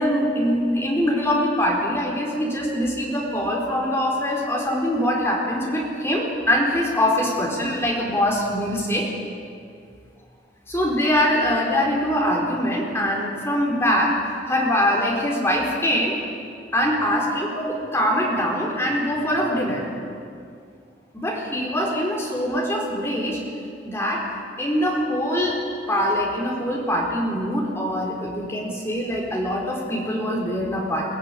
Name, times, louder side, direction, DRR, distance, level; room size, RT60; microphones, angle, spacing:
voice 1, 0.0-9.1 10.7-14.2 14.5-16.2 16.7-19.9 21.1-23.4 23.8-24.3 24.6-25.6 25.9-31.1, equal, 15° left, -3 dB, 4.5 m, -23 dB
22.5 x 19.0 x 10.0 m, 2.4 s
head